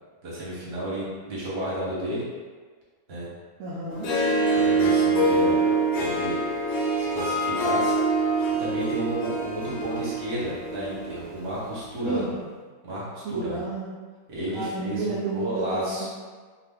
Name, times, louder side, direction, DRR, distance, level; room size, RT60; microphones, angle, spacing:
voice 1, 0.2-2.2 3.1-3.3 4.5-5.6 6.0-6.4 7.0-8.0 8.6-12.2 12.8-13.6 14.3-16.1, equal, 45° right, -7 dB, 1.0 m, -32 dB
voice 2, 3.6-4.1 12.0-12.4 13.2-13.9 14.5-16.1, right 3 dB, 70° right, -6 dB, 0.9 m, -31 dB
Harp, 3.9-11.3, right 2 dB, 70° left, 0.9 m, -25 dB
2.5 x 2.4 x 3.4 m, 1.5 s
omnidirectional pair, 1.7 m